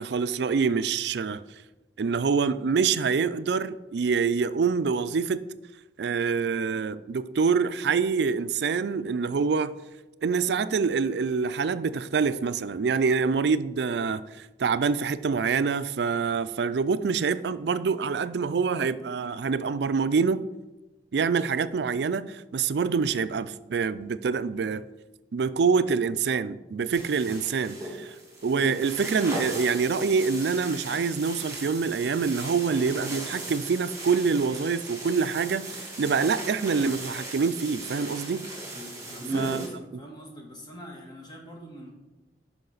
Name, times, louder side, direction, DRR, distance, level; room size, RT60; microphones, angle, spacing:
voice 1, 0.0-1.4 2.0-5.4 6.0-9.7 10.2-20.5 21.1-24.8 25.3-28.1 28.4-38.5 39.3-39.7, right 5 dB, 70° right, 14 dB, 0.4 m, -26 dB
sound 1, 26.9-39.7, right 1 dB, 20° right, 2.7 m, -37 dB
voice 2, 39.0-41.9, equal, 25° left, -1 dB, 1.9 m, -43 dB
12.0 x 5.1 x 3.9 m, 1.1 s
head